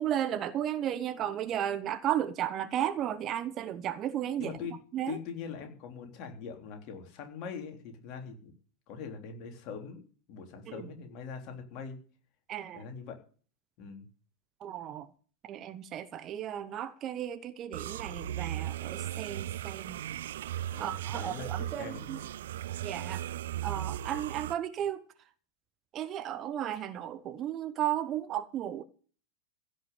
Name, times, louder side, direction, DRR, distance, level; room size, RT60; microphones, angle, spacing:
voice 1, 0.0-4.6 4.9-5.2 10.7-10.9 12.5-12.8 14.6-15.1 15.4-20.0 20.8-22.2 22.8-23.2 23.6-25.0 25.9-28.8, right 11 dB, 30° right, 1.0 m, -34 dB
voice 2, 4.4-4.7 5.1-8.5 8.9-10.0 10.3-12.0 12.7-13.2 13.8-14.1 20.7-22.0, left 6 dB, 40° left, 3.5 m, -42 dB
sound 1, 17.7-24.5, right 12 dB, 60° right, 0.6 m, -37 dB
16.0 x 6.2 x 9.3 m
figure-of-eight pair, 90°, 0 cm